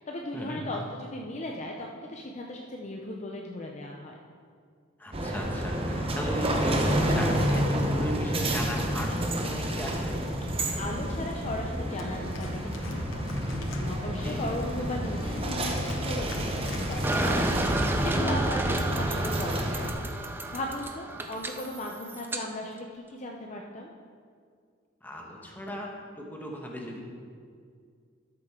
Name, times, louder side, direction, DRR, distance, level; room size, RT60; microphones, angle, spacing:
voice 1, 0.0-4.2 10.6-13.3 13.5-23.9, left 1 dB, 35° left, 0 dB, 0.6 m, -37 dB
voice 2, 5.0-10.1 14.2-14.4 18.7-19.1 25.0-25.9 26.2-27.0, equal, 10° left, -1 dB, 1.2 m, -36 dB
sound 1, 5.1-19.9, right 1 dB, 30° right, 0.9 m, -29 dB
Organ, 11.9-18.5, left 2 dB, 80° left, 0.8 m, -39 dB
sound 2, 17.0-22.4, right 1 dB, 10° right, 0.4 m, -31 dB
12.5 x 7.6 x 3.7 m, 2.2 s
head